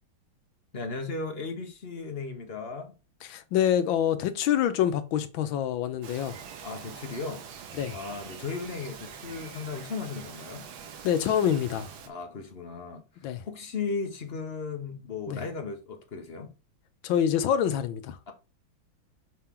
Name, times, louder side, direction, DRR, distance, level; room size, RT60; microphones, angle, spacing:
voice 1, 0.7-2.9 6.6-7.5 7.9-10.7 12.1-13.0 13.5-16.5 18.3-18.4, left 4 dB, 40° left, 1.0 m, -36 dB
voice 2, 3.2-6.4 7.8-8.0 11.0-11.9 13.2-13.4 15.3-15.4 17.0-18.2, left 9 dB, 80° left, 1.5 m, -26 dB
Bird vocalization bird call bird song, 6.0-12.1, right 7 dB, 80° right, 1.7 m, -44 dB
6.0 x 4.4 x 3.7 m
omnidirectional pair, 2.2 m